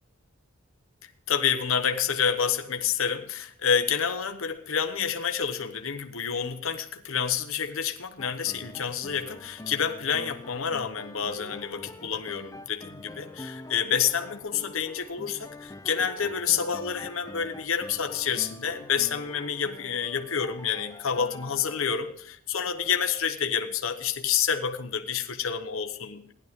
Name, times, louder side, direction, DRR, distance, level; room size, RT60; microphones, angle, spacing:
voice 1, 1.3-26.3, left 7 dB, 75° left, 7 dB, 1.0 m, -28 dB
sound 1, 8.2-21.9, left 2 dB, 15° left, 0.5 m, -45 dB
16.0 x 11.0 x 3.6 m, 0.67 s
head